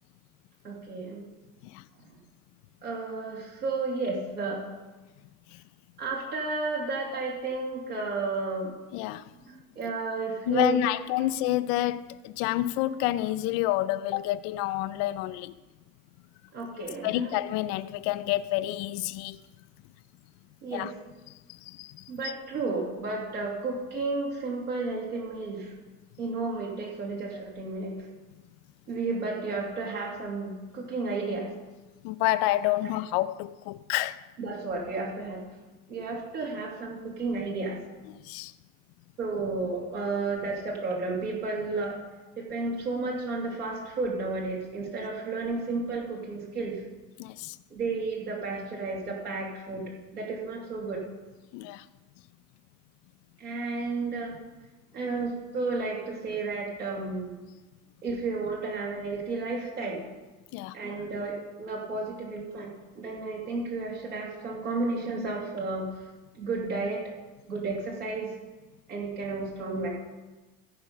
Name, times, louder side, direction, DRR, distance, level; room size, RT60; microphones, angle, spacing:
voice 1, 0.6-1.3 2.8-4.6 6.0-8.7 9.4-10.8 16.5-17.3 20.6-20.9 22.1-25.7 26.2-28.0 28.9-31.5 34.4-35.4 35.9-37.8 39.2-42.0 42.4-46.8 47.7-51.0 53.4-54.3 54.9-57.3 58.0-60.0 60.7-65.9 66.4-67.0 67.5-68.3 68.9-69.9, right 3 dB, 70° right, 2.5 m, -32 dB
voice 2, 8.9-9.2 10.5-15.5 17.0-19.4 20.7-20.9 21.5-22.0 32.0-34.2 38.1-38.5 47.2-47.6 51.5-51.9 60.5-60.8, left 15 dB, 35° left, 0.4 m, -29 dB
15.0 x 5.2 x 5.5 m
figure-of-eight pair, 70°, 47 cm